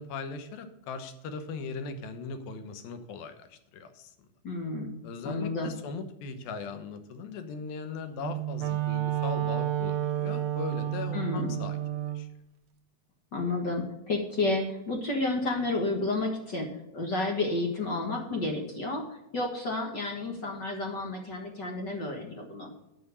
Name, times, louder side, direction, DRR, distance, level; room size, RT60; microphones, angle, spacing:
voice 1, 0.0-4.1 5.0-12.3, left 5 dB, 85° left, 8 dB, 2.9 m, -39 dB
voice 2, 4.4-5.0 5.2-5.7 11.1-11.5 13.3-19.0 19.3-22.7, left 2 dB, 45° left, 1 dB, 1.5 m, -31 dB
Wind instrument woodwind instrument, 8.1-12.3, right 12 dB, 75° right, 2.6 m, -30 dB
9.5 x 5.9 x 8.2 m, 0.88 s
omnidirectional pair, 4.1 m